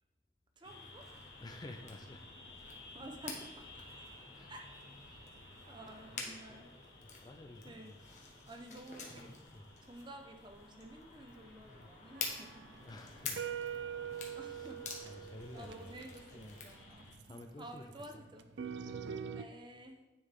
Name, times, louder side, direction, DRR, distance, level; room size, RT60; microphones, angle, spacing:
sound 1, 0.6-17.2, left 2 dB, 65° left, 2.0 m, -56 dB
sound 2, 0.6-16.8, left 4 dB, 45° left, 1.3 m, -49 dB
voice 1, 0.6-1.1 2.6-3.9 4.5-4.7 5.7-6.7 7.6-7.9 8.5-9.3 9.8-12.8 14.3-18.5 19.3-20.0, right 1 dB, 25° right, 4 dB, 0.8 m, -52 dB
voice 2, 1.4-2.2 4.3-4.5 5.1-5.3 6.1-6.6 7.0-8.0 9.5-9.6 11.6-11.9 12.8-13.4 14.1-14.7 15.0-16.6 17.2-17.9 18.1-18.3 18.8-19.0, left 1 dB, 25° left, 5 dB, 0.4 m, -52 dB
sound 3, 12.2-19.4, right 8 dB, 80° right, 0.5 m, -44 dB
9.7 x 5.5 x 3.6 m, 1.1 s
head